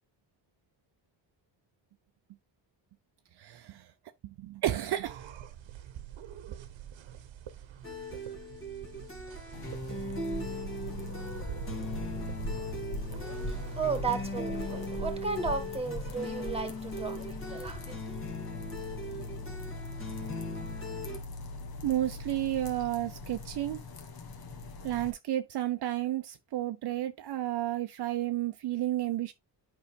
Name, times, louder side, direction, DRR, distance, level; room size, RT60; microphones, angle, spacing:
voice 1, 3.4-3.9 4.2-5.2 21.8-23.8 24.8-29.3, right 13 dB, 60° right, 0.6 m, -32 dB
sound 1, 5.0-13.8, right 10 dB, 85° right, 1.1 m, -45 dB
sound 2, 7.8-21.2, left 1 dB, 30° left, 2.0 m, -39 dB
sound 3, 9.5-25.1, left 2 dB, 55° left, 1.6 m, -41 dB
voice 2, 13.1-18.0, right 4 dB, 15° right, 1.6 m, -35 dB
8.6 x 5.6 x 2.3 m
cardioid pair, 120°, 44 cm